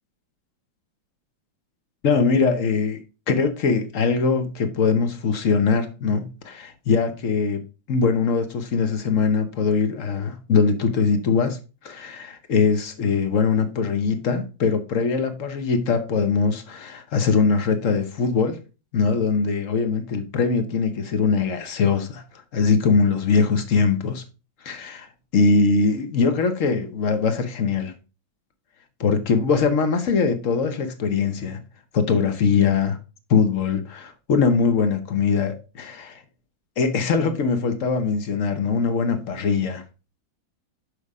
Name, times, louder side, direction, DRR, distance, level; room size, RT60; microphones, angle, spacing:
voice 1, 2.0-3.0 3.3-7.6 7.9-18.6 18.9-22.2 22.5-24.2 24.6-27.9 29.0-31.6 31.9-33.0 33.3-36.2 36.8-39.8, left 5 dB, 50° left, 1.0 m, -22 dB
6.6 x 5.1 x 4.7 m
omnidirectional pair, 2.2 m